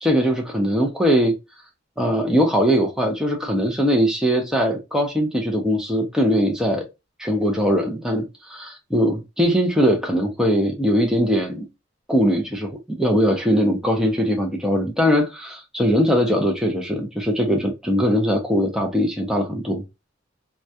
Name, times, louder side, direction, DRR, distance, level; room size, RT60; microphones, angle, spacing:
voice 1, 0.0-1.4 2.0-6.8 7.2-11.7 12.1-19.8, equal, 5° right, 0.5 m, -21 dB
2.3 x 2.1 x 2.6 m
head